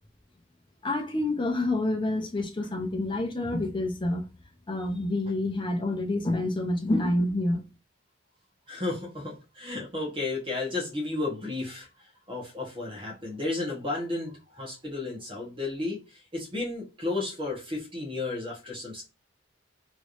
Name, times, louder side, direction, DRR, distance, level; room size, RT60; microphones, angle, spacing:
voice 1, 0.8-4.3 4.7-7.6, left 1 dB, 25° left, 0.6 m, -28 dB
voice 2, 8.7-11.9 12.3-16.0 16.3-19.0, left 2 dB, 25° right, 1.2 m, -33 dB
3.3 x 3.1 x 2.5 m
head